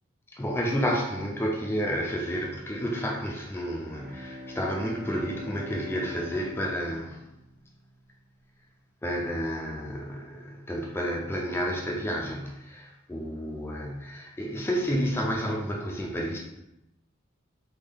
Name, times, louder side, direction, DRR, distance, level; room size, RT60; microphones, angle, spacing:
voice 1, 0.3-7.2 9.0-16.4, equal, 10° left, -1 dB, 0.4 m, -30 dB
Bowed string instrument, 3.7-8.3, left 2 dB, 75° right, 1.5 m, -43 dB
3.5 x 2.3 x 3.3 m, 0.87 s
head